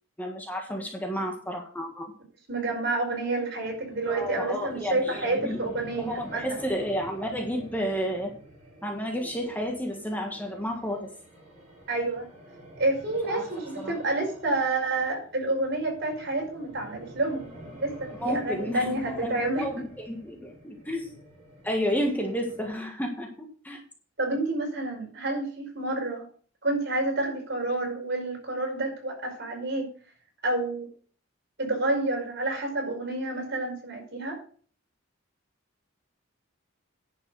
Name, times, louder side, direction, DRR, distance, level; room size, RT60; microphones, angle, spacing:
voice 1, 0.2-2.1 4.1-5.6 6.0-8.3 8.8-11.1 13.3-13.4 13.8-13.9 18.1-21.1 21.6-23.3 23.6-23.8, equal, 10° left, 2 dB, 1.7 m, -31 dB
voice 2, 2.5-6.6 11.9-12.3 12.8-19.6 24.2-26.3 26.6-29.9 30.4-30.9 31.6-34.4, right 2 dB, 55° right, 0 dB, 5.2 m, -29 dB
sound 1, 3.6-22.7, right 1 dB, 35° right, 6.1 m, -49 dB
10.5 x 6.2 x 6.4 m, 0.44 s
head